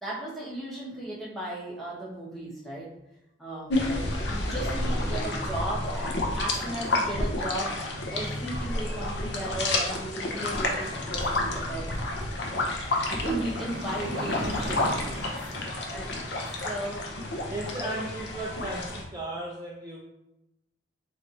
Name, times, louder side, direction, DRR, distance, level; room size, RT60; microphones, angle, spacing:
voice 1, 0.0-2.9 3.4-7.8 8.1-11.8 13.1-14.9 15.9-16.1 16.6-17.1 17.8-18.0, right 1 dB, ahead, -6 dB, 1.0 m, -36 dB
sound 1, 3.7-19.0, left 2 dB, 65° left, 0.6 m, -30 dB
sound 2, 10.8-10.9 11.2-16.9, right 1 dB, 60° right, 0.7 m, -40 dB
voice 2, 17.5-20.0, right 1 dB, 20° right, -5 dB, 0.4 m, -36 dB
3.2 x 2.5 x 4.0 m, 0.90 s
head